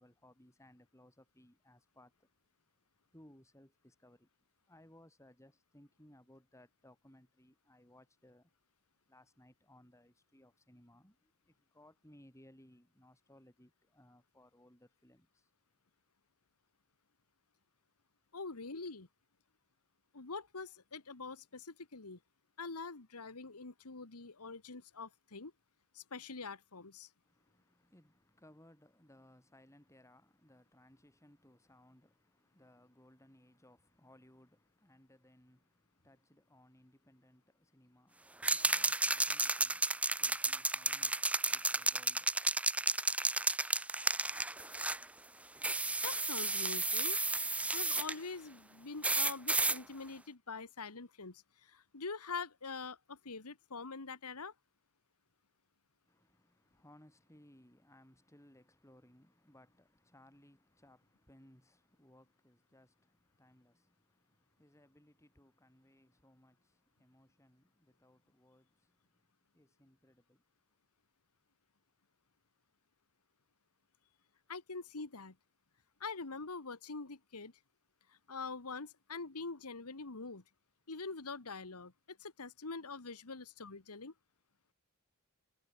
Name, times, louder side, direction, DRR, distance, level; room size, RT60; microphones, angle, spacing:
voice 1, 0.0-2.3 3.1-4.3 4.6-8.5 9.1-15.5 27.2-42.3 56.0-69.3 69.5-70.4, left 1 dB, 15° left, 6.6 m, -64 dB
voice 2, 18.3-19.1 20.1-22.2 22.6-25.5 25.9-27.1 46.0-47.2 47.7-51.4 51.7-54.5 74.5-75.3 76.0-77.5 78.3-80.4 80.9-84.1, left 4 dB, 85° left, 1.7 m, -44 dB
sound 1, 38.4-45.0 45.6-48.1 49.0-49.8, right 2 dB, 5° right, 0.6 m, -32 dB
head